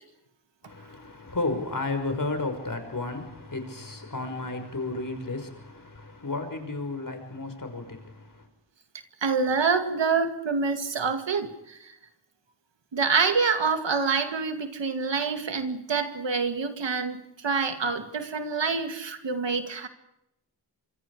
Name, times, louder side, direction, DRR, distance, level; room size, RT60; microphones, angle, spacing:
voice 1, 0.6-8.5, left 2 dB, 50° left, 5.7 m, -33 dB
voice 2, 9.2-11.9 12.9-19.9, right 5 dB, 85° right, 2.3 m, -26 dB
26.0 x 24.5 x 5.0 m
cardioid pair, 50°, 43 cm